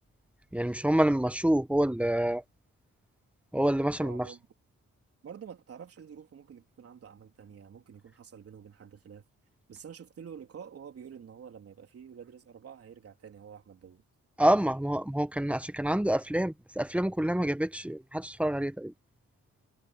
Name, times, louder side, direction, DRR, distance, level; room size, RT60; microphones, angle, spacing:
voice 1, 0.5-2.4 3.5-4.3 14.4-18.9, right 1 dB, 5° right, 1.4 m, -27 dB
voice 2, 4.0-4.4 5.2-9.2 9.7-14.0, right 7 dB, 50° right, 3.6 m, -48 dB
cardioid pair, 90°, 30 cm